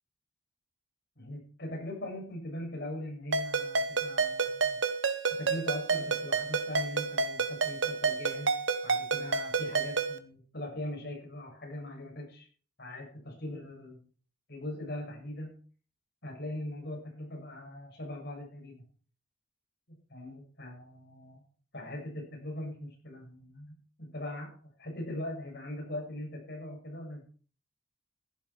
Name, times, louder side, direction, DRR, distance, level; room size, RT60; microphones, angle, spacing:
voice 1, 1.2-4.8 5.3-8.5 8.8-12.5 12.8-14.0 14.5-15.6 16.2-18.8 19.9-21.4 21.7-23.7 24.0-24.5 24.8-27.2, left 1 dB, 55° left, -1 dB, 7.6 m, -40 dB
Ringtone, 3.3-10.2, right 4 dB, 70° right, 1.2 m, -30 dB
15.5 x 11.0 x 4.7 m, 0.41 s
head